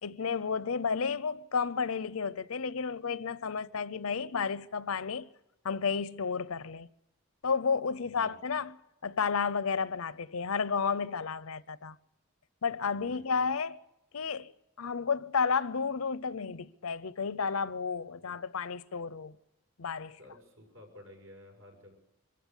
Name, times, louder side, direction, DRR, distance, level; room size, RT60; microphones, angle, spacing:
voice 1, 0.0-5.3 5.6-6.9 7.4-8.8 9.0-12.0 12.6-13.8 14.1-14.5 14.8-19.4 19.8-20.2, left 5 dB, 80° left, 0.7 m, -32 dB
voice 2, 8.0-8.6 12.9-13.5 18.1-18.4 20.2-22.0, left 1 dB, 75° right, 6.7 m, -54 dB
24.5 x 14.5 x 8.2 m
head